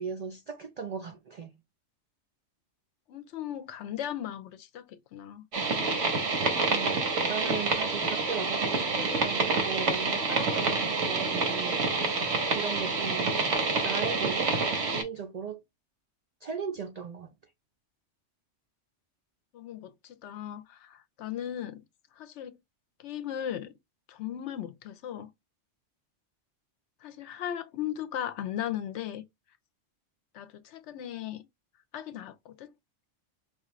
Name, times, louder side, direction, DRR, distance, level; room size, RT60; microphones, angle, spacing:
voice 1, 0.0-1.6 6.6-13.3 13.8-14.6 14.9-15.6 16.4-17.3, right 6 dB, 65° right, 0.3 m, -37 dB
voice 2, 3.1-5.4 19.5-21.8 22.2-22.6 23.0-23.7 24.1-25.3 27.0-29.2 30.3-31.4 31.9-32.7, left 11 dB, 75° left, 0.9 m, -37 dB
sound 1, 5.5-15.0, right 3 dB, 90° right, 1.4 m, -28 dB
4.6 x 2.5 x 3.0 m
omnidirectional pair, 1.2 m